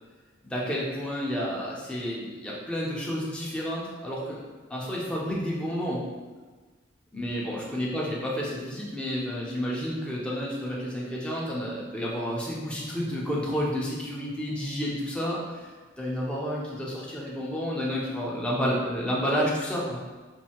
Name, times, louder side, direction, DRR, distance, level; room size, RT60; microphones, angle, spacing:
voice 1, 0.5-4.4 4.7-6.0 7.1-20.0, equal, 5° left, -5 dB, 0.7 m, -30 dB
5.3 x 2.7 x 2.9 m, 1.3 s
head